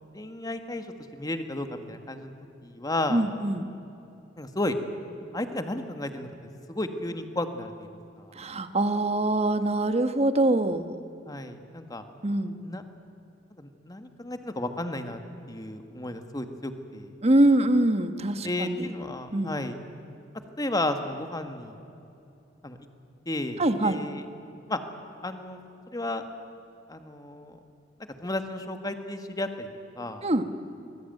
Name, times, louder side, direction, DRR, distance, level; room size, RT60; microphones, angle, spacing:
voice 1, 0.1-0.9 1.1-2.3 2.6-3.2 4.4-4.8 5.3-6.3 6.7-7.9 8.2-8.3 11.3-12.0 12.6-12.8 13.6-15.2 15.5-17.1 18.4-19.8 20.6-21.7 22.6-22.8 23.2-24.2 24.7-24.8 25.2-25.6 25.9-26.3 26.9-27.6 28.2-29.7 30.0-30.2, left 1 dB, 20° left, 7 dB, 1.7 m, -33 dB
voice 2, 3.1-3.7 8.4-10.9 12.2-12.6 17.2-18.9 19.3-19.5 23.6-24.0 30.2-30.4, right 1 dB, 35° right, 9 dB, 1.3 m, -24 dB
25.5 x 20.5 x 9.2 m, 2.7 s
head